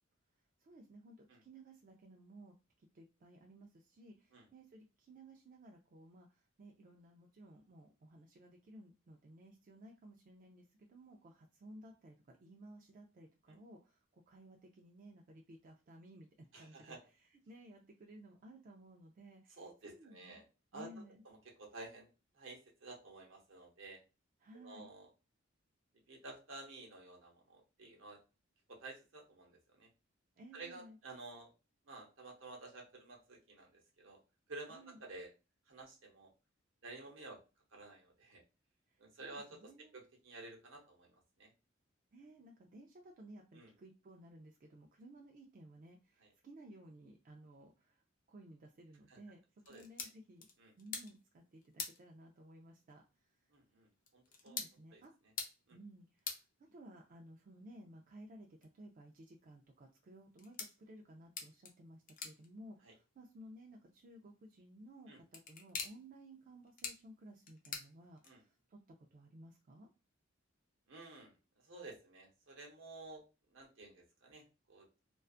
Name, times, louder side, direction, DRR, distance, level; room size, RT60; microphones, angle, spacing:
voice 1, 0.6-20.4 20.7-21.2 24.4-24.9 30.4-31.0 34.7-35.0 38.9-40.0 42.1-49.4 49.7-50.5 50.8-53.4 54.4-55.1 55.7-68.8 69.1-69.9, right 1 dB, 45° right, 1 dB, 0.3 m, -57 dB
voice 2, 16.5-17.0 19.6-20.4 20.7-20.9 21.2-22.1 22.3-24.0 24.5-25.1 26.1-28.2 28.7-29.9 30.5-31.5 31.8-34.2 34.5-35.3 35.7-36.3 36.8-37.4 37.7-38.4 39.0-41.1 41.4-41.5 43.5-43.7 46.2-46.3 49.1-49.2 49.7-49.8 50.6-50.7 53.5-54.6 54.9-55.0 55.7-55.8 62.8-62.9 65.1-65.2 68.2-68.4 70.9-71.3 71.6-73.2 73.5-74.8, right 2 dB, 75° right, 0 dB, 0.9 m, -52 dB
sound 1, 49.6-68.7, left 5 dB, 45° left, 0.5 m, -50 dB
2.5 x 2.2 x 2.3 m, 0.30 s
head